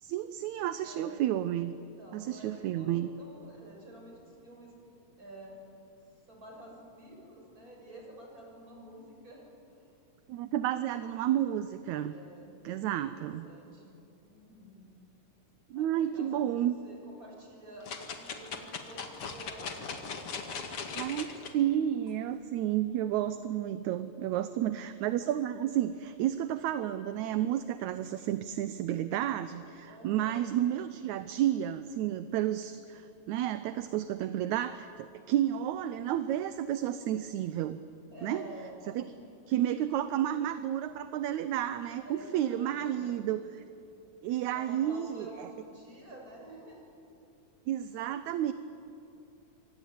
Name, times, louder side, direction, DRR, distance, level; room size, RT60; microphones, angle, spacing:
voice 1, 0.0-1.8 2.1-3.1 10.3-12.1 12.6-13.5 15.7-16.8 20.9-21.3 21.5-37.8 38.2-38.4 38.9-39.0 39.5-43.6 44.2-45.5 47.7-48.5, right 11 dB, 75° right, 12 dB, 2.0 m, -31 dB
voice 2, 0.8-1.2 1.7-4.7 5.2-5.5 6.3-9.4 9.7-9.9 12.1-14.0 14.3-14.9 15.7-20.6 29.9-30.4 35.2-35.4 38.1-39.5 42.0-43.3 44.5-46.8 47.2-47.3, right 1 dB, 25° right, -1 dB, 6.9 m, -50 dB
sound 1, 17.8-21.5 22.1-22.2, left 5 dB, 50° left, 2.6 m, -39 dB
25.5 x 24.5 x 9.3 m, 2.7 s
omnidirectional pair, 3.7 m